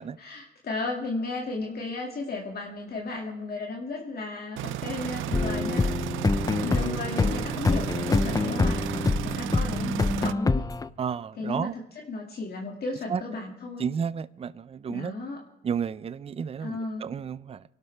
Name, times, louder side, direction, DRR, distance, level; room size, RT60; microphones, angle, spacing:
voice 1, 0.0-5.9 6.6-8.8 9.2-10.6 11.4-13.9 14.9-15.4 16.6-17.1, left 3 dB, 50° left, 2.2 m, -34 dB
sound 1, 4.6-10.3, right 14 dB, 80° right, 0.5 m, -33 dB
sound 2, 5.3-10.9, left 3 dB, 20° left, 0.5 m, -26 dB
voice 2, 9.2-9.6 11.0-11.7 13.1-13.2 13.8-15.1 15.6-17.6, right 7 dB, 30° right, 0.5 m, -32 dB
24.5 x 12.0 x 3.4 m
cardioid pair, 90°, 20 cm